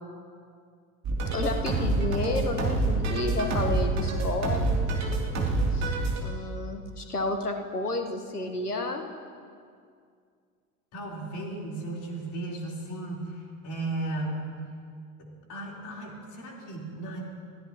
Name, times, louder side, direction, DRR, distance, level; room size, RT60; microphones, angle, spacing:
sound 1, 1.0-6.2, right 2 dB, 35° right, 2.7 m, -27 dB
voice 1, 1.3-4.9 5.7-9.0, left 2 dB, 85° left, 5 dB, 1.3 m, -31 dB
voice 2, 10.9-14.5 15.2-17.2, right 2 dB, 40° left, -1 dB, 3.7 m, -35 dB
29.5 x 15.5 x 2.9 m, 2.2 s
figure-of-eight pair, 65°, 45 cm